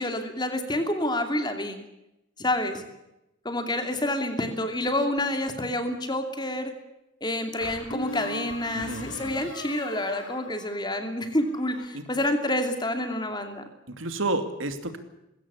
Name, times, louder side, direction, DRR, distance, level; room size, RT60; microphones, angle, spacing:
voice 1, 0.0-1.8 2.4-2.8 3.4-6.7 7.2-13.6, left 1 dB, 20° left, 7 dB, 2.7 m, -28 dB
sound 1, 4.9-5.7 7.6-11.1 11.4-11.9, left 1 dB, 75° left, 3.9 m, -40 dB
voice 2, 8.7-9.5 11.9-12.0 13.9-15.0, right 2 dB, 75° right, 8 dB, 2.7 m, -31 dB
21.0 x 17.0 x 8.3 m, 0.90 s
head